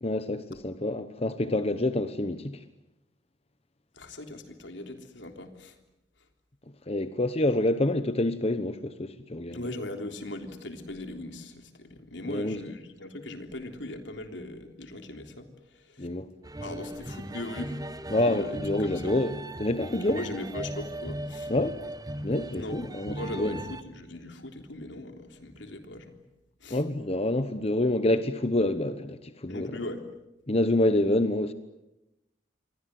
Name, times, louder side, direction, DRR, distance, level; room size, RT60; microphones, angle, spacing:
voice 1, 0.0-2.6 6.9-9.7 12.3-12.6 16.0-16.3 18.1-20.2 21.5-21.8 22.2-23.6 26.7-29.7 30.5-31.5, left 1 dB, 35° left, 1.0 m, -27 dB
voice 2, 3.9-5.8 9.5-16.1 16.6-17.8 18.3-19.2 20.0-21.5 22.5-22.8 23.1-26.2 26.6-26.8 29.5-30.1, left 1 dB, 85° left, 3.5 m, -39 dB
sound 1, 16.4-23.8, right 1 dB, 20° right, 1.3 m, -38 dB
28.5 x 23.5 x 7.8 m
head